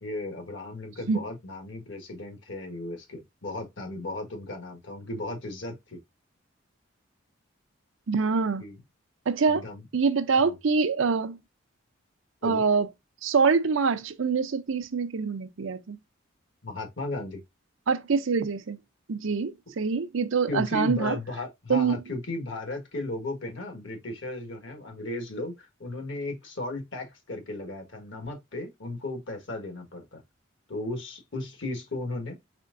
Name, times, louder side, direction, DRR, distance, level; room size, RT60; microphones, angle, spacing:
voice 1, 0.0-6.0 8.6-8.8 9.5-9.8 10.4-10.5 12.4-12.6 16.6-17.4 20.5-30.2 30.7-32.3, left 2 dB, 65° left, 1.5 m, -35 dB
voice 2, 8.1-8.6 9.3-9.6 9.9-11.4 12.4-12.9 13.2-16.0 17.9-18.8 19.1-21.2 21.7-22.0, right 5 dB, 75° right, 0.6 m, -25 dB
4.3 x 3.6 x 2.5 m
head